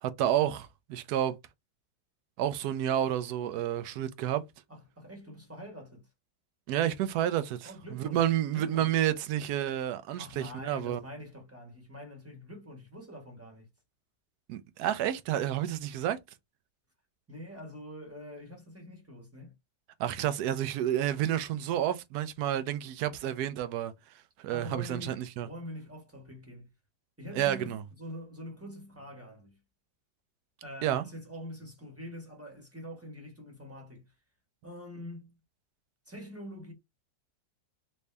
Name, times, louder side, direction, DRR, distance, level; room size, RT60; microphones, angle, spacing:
voice 1, 0.0-1.4 2.4-4.4 6.7-11.0 14.5-16.2 20.0-23.9 24.4-25.5 27.3-27.8 30.8-31.1, right 11 dB, 70° right, 1.0 m, -30 dB
voice 2, 4.7-6.1 7.6-9.0 10.2-13.7 17.3-19.5 24.5-26.7 27.2-29.6 30.6-34.1 34.6-35.4 36.1-36.7, equal, 10° right, 1.2 m, -45 dB
3.3 x 2.7 x 3.2 m
omnidirectional pair, 1.9 m